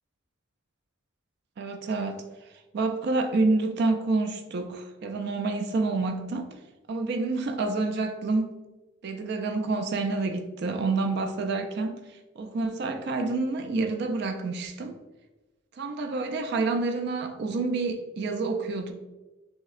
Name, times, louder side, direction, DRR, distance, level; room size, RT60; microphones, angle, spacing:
voice 1, 1.6-2.2 2.7-6.5 6.9-8.5 9.0-12.0 12.4-14.9 15.8-18.9, right 3 dB, 55° right, 0.3 m, -28 dB
6.1 x 2.1 x 2.4 m
head